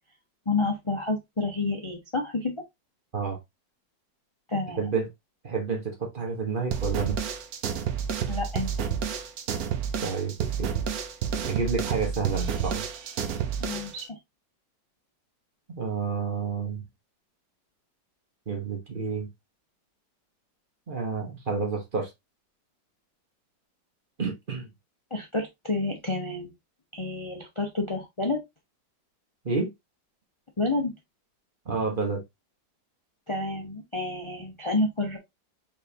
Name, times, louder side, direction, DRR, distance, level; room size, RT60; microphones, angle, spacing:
voice 1, 0.5-2.5 4.5-4.9 8.3-8.9 13.6-14.2 25.1-26.5 26.9-28.4 30.6-30.9 33.3-35.2, left 2 dB, 45° left, 0.4 m, -29 dB
voice 2, 4.7-5.1 5.4-7.2 10.0-10.7 11.5-12.8 15.8-16.8 18.5-19.3 20.9-22.1 24.2-24.7 29.4-29.7 31.6-32.2, right 5 dB, 30° right, 1.2 m, -29 dB
sound 1, 6.7-14.0, right 8 dB, 60° right, 1.0 m, -30 dB
4.5 x 3.7 x 2.7 m
omnidirectional pair, 2.0 m